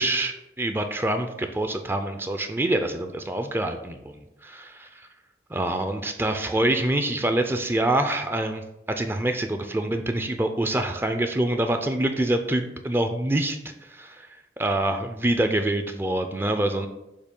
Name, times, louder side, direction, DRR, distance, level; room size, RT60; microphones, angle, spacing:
voice 1, 0.0-5.1 5.5-13.6 13.8-14.3 14.6-16.9, right 1 dB, 15° right, 6 dB, 0.4 m, -26 dB
6.6 x 2.7 x 5.3 m, 0.91 s
head